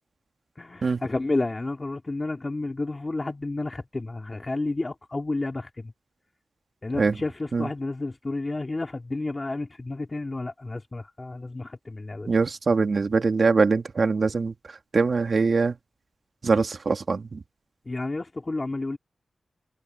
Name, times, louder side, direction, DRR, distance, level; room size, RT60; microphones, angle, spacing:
voice 1, 0.6-5.9 6.8-12.3 17.9-19.0, left 2 dB, 35° left, 2.9 m, -31 dB
voice 2, 12.3-14.5 14.9-15.8 16.4-17.4, right 4 dB, 60° right, 2.7 m, -23 dB
cardioid pair, 65°, 0 cm